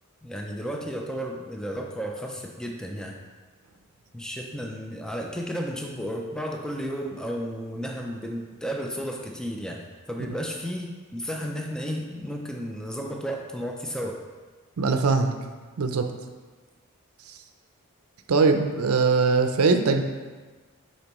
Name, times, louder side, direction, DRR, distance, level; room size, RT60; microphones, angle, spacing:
voice 1, 0.2-3.2 4.1-14.2, equal, 5° left, 1 dB, 0.4 m, -33 dB
voice 2, 14.8-15.3 15.8-16.1 18.3-20.0, right 4 dB, 80° right, 6 dB, 0.5 m, -21 dB
8.6 x 4.4 x 3.0 m, 1.4 s
head